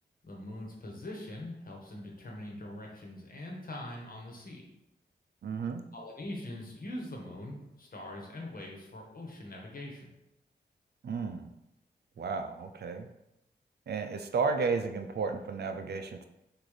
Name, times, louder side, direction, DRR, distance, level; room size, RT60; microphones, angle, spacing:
voice 1, 0.2-4.6 5.9-10.1, left 1 dB, 50° left, 0 dB, 1.3 m, -42 dB
voice 2, 5.4-5.8 11.0-11.5 12.2-13.1 13.9-16.3, right 4 dB, 60° right, 7 dB, 0.5 m, -33 dB
5.9 x 2.6 x 3.3 m, 0.88 s
cardioid pair, 55°, 18 cm